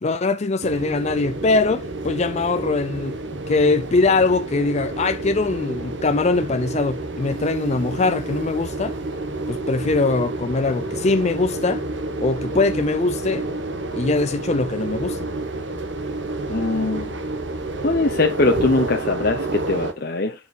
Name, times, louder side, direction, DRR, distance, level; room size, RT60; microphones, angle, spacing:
voice 1, 0.0-3.2 3.5-9.0 9.5-11.8 12.2-13.5 13.9-15.2, left 3 dB, 35° left, 0.5 m, -22 dB
sound 1, 0.6-19.9, right 2 dB, 80° right, 1.6 m, -29 dB
voice 2, 16.5-17.1 17.8-20.3, left 2 dB, 55° left, 1.0 m, -21 dB
11.0 x 6.0 x 4.3 m
head